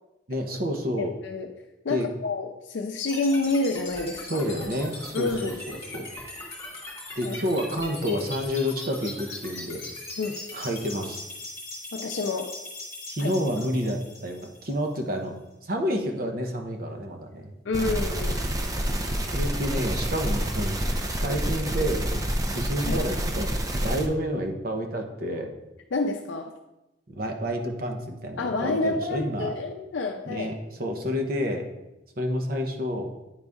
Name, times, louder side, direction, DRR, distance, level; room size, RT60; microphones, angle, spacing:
voice 1, 0.3-1.1 1.9-2.1 4.3-5.5 5.9-6.0 7.2-9.8 10.5-11.2 13.1-15.4 15.6-17.5 19.3-22.3 22.5-25.5 27.1-29.5 30.3-30.5 30.8-31.7 32.2-33.1, equal, 50° right, 3 dB, 0.9 m, -29 dB
voice 2, 1.0-1.5 1.8-4.4 5.1-5.6 7.2-7.4 10.2-10.4 11.9-12.5 13.2-13.3 17.7-18.4 22.9-23.0 25.9-26.5 28.4-30.5, left 3 dB, 70° left, 3 dB, 0.5 m, -28 dB
sound 1, 3.1-15.1, left 2 dB, 15° left, 2.6 m, -40 dB
sound 2, 17.7-24.1, equal, 20° right, 0.5 m, -28 dB
9.8 x 4.0 x 3.6 m, 0.95 s
head